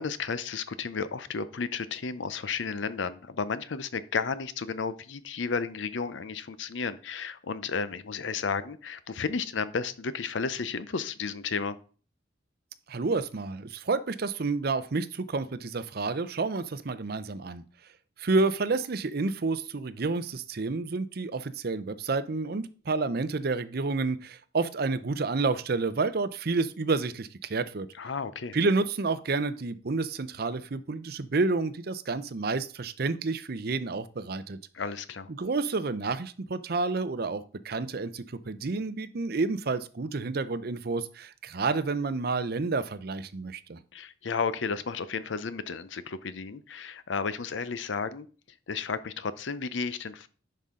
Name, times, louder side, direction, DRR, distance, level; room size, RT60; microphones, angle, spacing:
voice 1, 0.0-11.8 27.9-28.6 34.7-35.3 43.9-48.3 48.7-50.3, left 5 dB, 80° left, 14 dB, 0.6 m, -33 dB
voice 2, 12.9-17.6 18.2-27.9 28.5-34.6 35.3-43.8, right 3 dB, 55° right, 13 dB, 0.6 m, -29 dB
10.5 x 5.5 x 3.7 m, 0.40 s
head